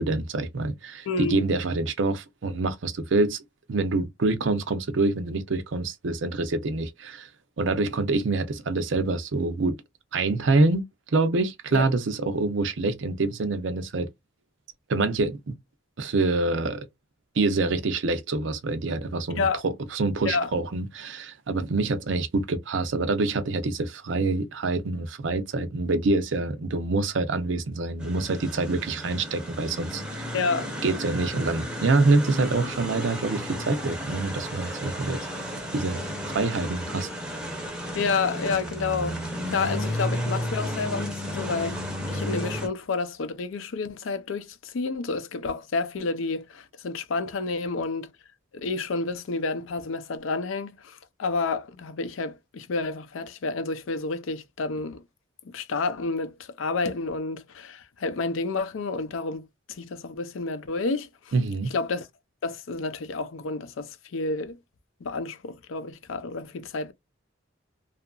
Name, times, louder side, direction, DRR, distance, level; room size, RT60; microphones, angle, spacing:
voice 1, 0.0-3.4 3.7-7.3 7.6-9.8 10.1-10.8 11.1-14.1 14.9-15.6 16.0-16.9 17.4-30.2 30.8-35.3 35.7-36.0 36.3-37.1 61.3-61.7, right 3 dB, 70° right, 0.5 m, -26 dB
voice 2, 1.1-1.4 11.7-11.8 19.4-19.6 20.3-20.5 30.3-30.7 37.9-41.8 42.1-48.1 48.5-55.0 55.5-61.1 61.7-62.1 62.4-64.6 65.0-66.9, left 4 dB, 80° left, 0.5 m, -30 dB
sound 1, 28.0-42.7, equal, 5° right, 0.6 m, -33 dB
2.8 x 2.4 x 2.3 m
head